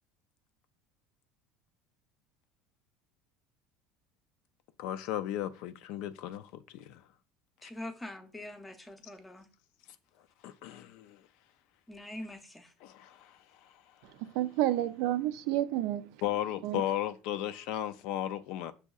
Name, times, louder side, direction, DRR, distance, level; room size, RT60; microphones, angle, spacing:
voice 1, 4.8-7.0 10.4-11.2 12.8-13.8 16.2-18.7, left 12 dB, 70° left, 0.3 m, -35 dB
voice 2, 7.6-9.5 11.9-12.7, left 1 dB, 10° left, 0.6 m, -44 dB
voice 3, 14.2-16.0 16.6-16.8, right 14 dB, 75° right, 0.3 m, -30 dB
6.3 x 2.7 x 2.3 m
supercardioid pair, 125°, 0 cm